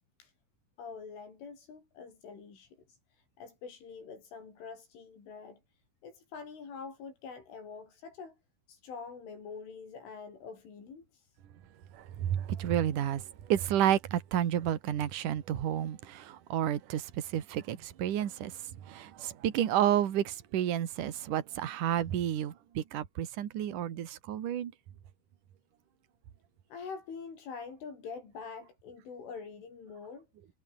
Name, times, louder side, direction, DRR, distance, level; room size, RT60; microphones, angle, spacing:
voice 1, 0.8-5.6 6.0-8.4 8.7-11.4 26.7-30.3, left 5 dB, 75° left, 9.1 m, -45 dB
voice 2, 11.9-18.6 18.9-24.7, right 11 dB, 50° right, 2.8 m, -31 dB
omnidirectional pair, 5.7 m